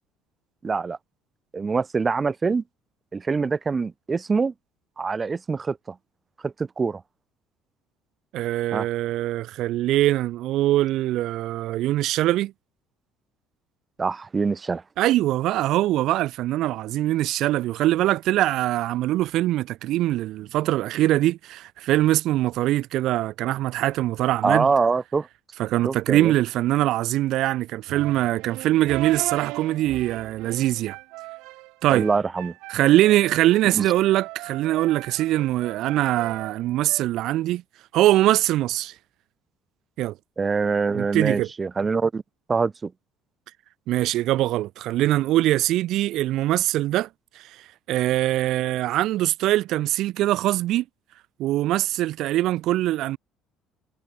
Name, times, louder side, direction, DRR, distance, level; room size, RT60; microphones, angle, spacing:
voice 1, 0.6-1.0 1.5-2.6 3.1-4.5 5.0-5.9 6.4-7.0 8.7-8.9 14.0-14.8 24.4-25.3 25.8-26.3 31.9-32.5 33.7-33.8 40.4-42.2 42.5-42.9, right 4 dB, 20° right, 0.9 m, -24 dB
voice 2, 8.3-12.5 15.0-24.7 25.6-31.0 31.8-32.1 32.7-37.6 37.9-38.9 40.0-40.1 40.9-41.5 43.9-47.1 47.3-50.8 51.4-53.2, right 15 dB, 55° right, 0.9 m, -22 dB
sound 1, 27.9-37.0, right 22 dB, 75° right, 3.0 m, -37 dB
cardioid pair, 165°, 0 cm